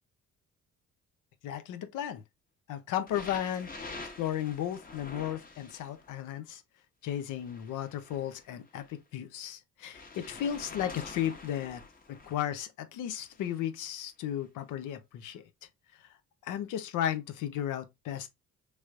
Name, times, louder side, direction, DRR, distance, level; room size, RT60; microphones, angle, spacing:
voice 1, 1.4-2.2 2.7-3.7 4.2-6.6 7.0-11.8 12.1-15.4 16.0-16.2 16.4-18.3, left 10 dB, 85° left, 0.7 m, -34 dB
sound 1, 3.1-6.2 7.1-8.9 9.9-12.5 13.2-13.6 14.4-14.5, left 3 dB, 30° left, 1.1 m, -47 dB
3.2 x 3.1 x 2.4 m
cardioid pair, 90°, 30 cm